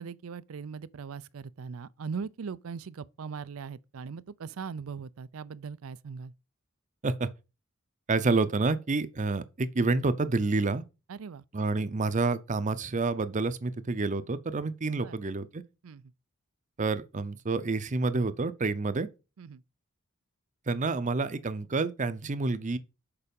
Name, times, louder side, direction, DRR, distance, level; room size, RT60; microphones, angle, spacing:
voice 1, 0.0-6.3 11.1-11.4 15.0-15.2 15.8-16.0 19.4-19.6, right 5 dB, 80° right, 0.5 m, -40 dB
voice 2, 8.1-10.8 11.5-15.6 16.8-19.1 20.7-22.8, right 3 dB, 35° right, 0.6 m, -28 dB
6.7 x 4.8 x 5.3 m
head